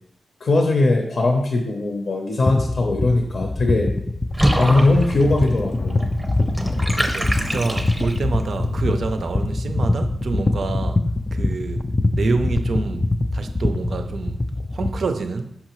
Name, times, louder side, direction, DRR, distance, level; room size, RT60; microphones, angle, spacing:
voice 1, 0.4-3.9 4.6-6.0, left 2 dB, 50° left, 0.6 m, -19 dB
sound 1, 2.5-15.1, left 2 dB, 20° left, 0.3 m, -24 dB
Water / Bathtub (filling or washing), 4.3-8.4, right 1 dB, 5° right, 0.7 m, -26 dB
sound 2, 4.9-8.9 9.4-9.5 10.1-10.6, left 2 dB, 85° left, 0.5 m, -36 dB
voice 2, 7.0-11.0 11.3-11.8 12.2-13.1 13.3-14.4 14.7-15.5, right 4 dB, 60° right, 0.4 m, -27 dB
5.7 x 5.5 x 3.0 m
wide cardioid pair, 140°, 0 cm